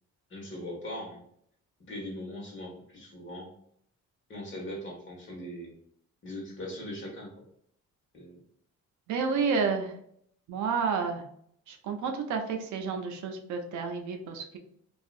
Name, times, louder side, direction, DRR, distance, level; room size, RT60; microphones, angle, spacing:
voice 1, 0.3-1.2 1.8-3.5 4.3-5.7 6.2-7.3 8.1-8.4, left 1 dB, 40° left, -2 dB, 1.3 m, -40 dB
voice 2, 9.1-9.9 10.5-11.2 11.7-14.6, right 5 dB, 75° right, 4 dB, 0.6 m, -30 dB
2.7 x 2.4 x 2.4 m, 0.68 s
cardioid pair, 90°, 30 cm